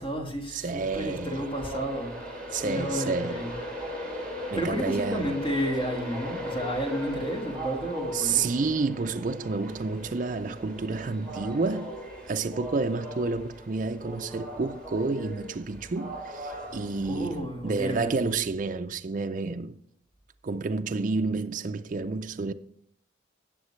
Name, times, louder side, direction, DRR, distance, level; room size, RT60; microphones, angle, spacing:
voice 1, 0.0-2.1 2.6-3.5 4.5-8.4 17.1-18.1, equal, 25° left, 1.6 m, -31 dB
voice 2, 0.5-1.5 2.5-3.4 4.5-5.3 8.1-11.9 12.3-19.8 20.4-22.5, right 4 dB, 40° right, 0.4 m, -30 dB
Train, 0.8-17.4, equal, 5° left, 3.0 m, -38 dB
17.5 x 6.6 x 3.1 m
head